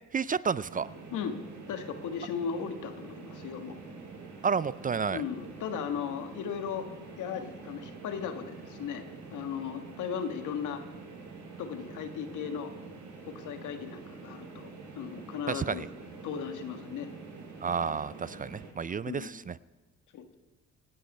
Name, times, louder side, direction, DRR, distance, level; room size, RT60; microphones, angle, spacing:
voice 1, 0.1-0.9 4.4-5.2 15.5-15.9 17.6-19.5, right 6 dB, 30° right, 18 dB, 0.4 m, -31 dB
sound 1, 0.6-18.7, right 4 dB, 65° right, 5.5 m, -46 dB
voice 2, 1.7-3.8 5.1-6.9 7.2-9.0 9.3-10.8 11.6-12.7 13.3-14.7 14.9-15.9 16.2-17.1 19.1-19.3 20.1-20.4, left 7 dB, 80° left, 8 dB, 1.6 m, -36 dB
26.0 x 9.0 x 5.4 m, 1.2 s
cardioid pair, 90°, 30 cm